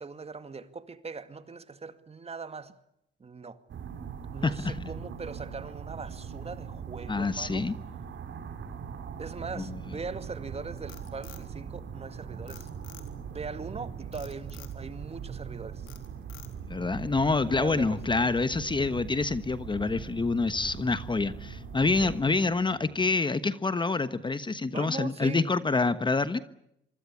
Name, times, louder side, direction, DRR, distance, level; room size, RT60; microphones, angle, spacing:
voice 1, 0.0-2.7 3.2-3.6 4.3-7.7 9.2-12.7 13.3-15.9 17.5-18.2 22.0-22.1 24.7-25.4, right 4 dB, 30° right, 2.2 m, -40 dB
sound 1, 3.7-22.2, right 7 dB, 65° right, 4.4 m, -41 dB
voice 2, 4.4-4.8 7.1-7.7 9.6-9.8 16.7-26.4, left 3 dB, 25° left, 1.2 m, -27 dB
Frog, 10.6-12.1 12.5-13.4 14.1-14.8 15.3-15.5 15.9-16.8, left 12 dB, 90° left, 3.8 m, -50 dB
sound 2, 17.2-23.0, left 4 dB, 60° left, 7.7 m, -51 dB
25.5 x 25.0 x 8.4 m
cardioid pair, 90°, 20 cm